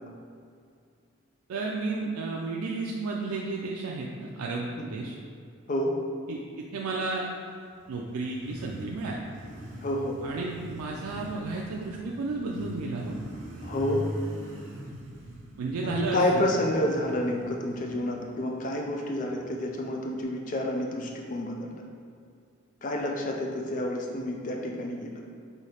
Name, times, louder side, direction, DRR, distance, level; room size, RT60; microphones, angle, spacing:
voice 1, 1.5-5.1 6.3-7.3 7.9-9.2 10.2-13.2 15.6-16.5, right 3 dB, 90° right, -2 dB, 0.4 m, -32 dB
Motorcycle, 7.5-20.2, equal, 55° right, 0.7 m, -43 dB
voice 2, 9.8-10.2 13.6-14.0 15.8-21.7 22.8-25.2, left 1 dB, 35° left, 1 dB, 0.4 m, -29 dB
5.5 x 2.7 x 3.2 m, 2.3 s
head